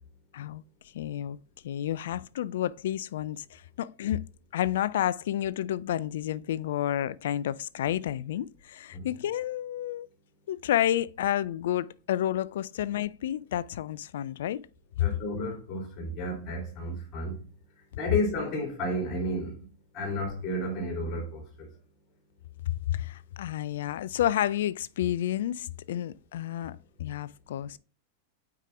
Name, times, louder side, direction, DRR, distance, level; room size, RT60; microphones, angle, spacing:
voice 1, 0.9-1.4 1.6-4.2 4.5-10.1 10.5-14.6 15.0-15.1 22.7-27.8, left 12 dB, 60° left, 0.3 m, -30 dB
voice 2, 15.0-17.4 18.0-19.5 19.9-21.4, left 1 dB, 35° left, 3.1 m, -32 dB
8.8 x 4.8 x 2.4 m
figure-of-eight pair, 90°, 0 cm